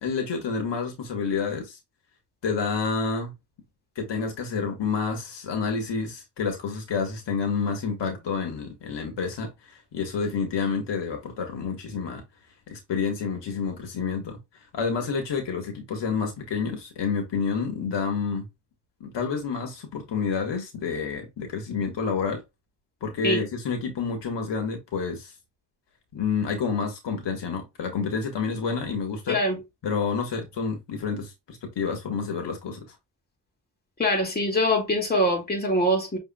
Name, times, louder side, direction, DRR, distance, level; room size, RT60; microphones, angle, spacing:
voice 1, 0.0-1.8 2.4-3.3 3.9-12.2 12.7-14.4 14.7-18.4 19.0-22.4 23.0-25.3 26.1-29.4 29.8-32.8, left 5 dB, 80° left, 1.5 m, -29 dB
voice 2, 29.3-29.6 34.0-36.2, equal, 20° left, 2.1 m, -23 dB
6.1 x 3.4 x 2.3 m
cardioid pair, 95°, 42 cm